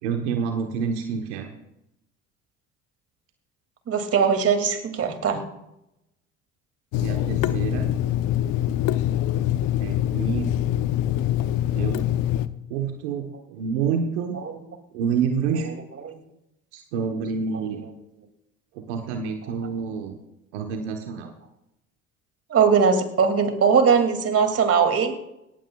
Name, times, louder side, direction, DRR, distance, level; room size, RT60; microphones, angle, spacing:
voice 1, 0.0-1.5 7.0-7.9 9.8-10.5 11.7-12.1 12.7-14.4 14.9-15.7 16.7-17.8 18.7-20.2 20.5-21.3, right 6 dB, 85° right, 4 dB, 1.2 m, -28 dB
voice 2, 3.9-5.4 14.4-14.6 16.0-16.1 22.5-25.2, right 6 dB, 45° right, 6 dB, 2.5 m, -20 dB
Water tap faucet / Sink (filling or washing), 6.9-12.5, left 12 dB, 70° left, 0.7 m, -24 dB
18.0 x 15.0 x 2.4 m, 0.85 s
hypercardioid pair, 65°, 33 cm